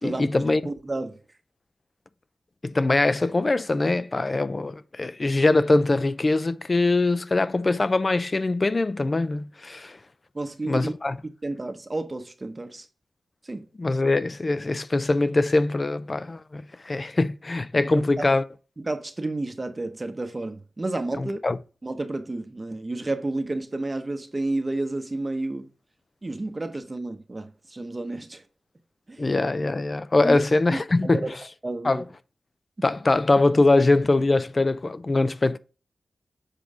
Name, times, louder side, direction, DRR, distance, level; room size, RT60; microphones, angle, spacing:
voice 1, 0.0-0.6 2.6-10.0 10.6-11.2 13.8-18.4 21.2-21.6 29.2-31.2 31.8-32.0 32.8-35.6, left 2 dB, 35° left, 0.5 m, -22 dB
voice 2, 0.6-1.2 10.3-10.9 11.4-12.9 13.4-13.7 17.7-18.3 18.8-21.4 21.8-25.7 26.2-28.4 29.1-29.3 30.2-30.4 30.7-31.3 31.6-32.1, right 2 dB, 25° right, 0.9 m, -31 dB
7.4 x 4.6 x 4.9 m
wide cardioid pair, 110°, 0 cm